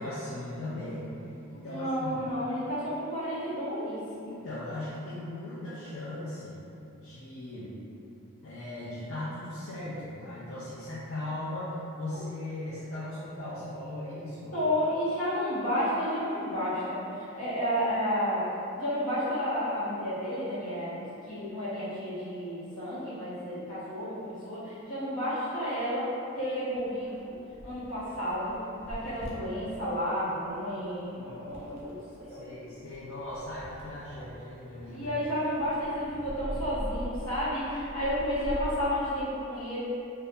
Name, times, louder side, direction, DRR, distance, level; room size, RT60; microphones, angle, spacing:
voice 1, 0.0-2.3 4.2-6.6 7.0-7.8 8.4-14.6 31.2-31.4 32.3-35.2, left 1 dB, 60° left, -10 dB, 0.4 m, -38 dB
voice 2, 1.6-4.0 14.5-18.5 18.7-26.1 26.3-27.3 27.6-28.6 28.8-32.5 34.1-34.2 34.9-39.8, equal, 85° left, -11 dB, 1.0 m, -31 dB
sound 1, 26.7-38.9, equal, 30° right, 0.3 m, -43 dB
2.7 x 2.3 x 2.2 m, 2.7 s
head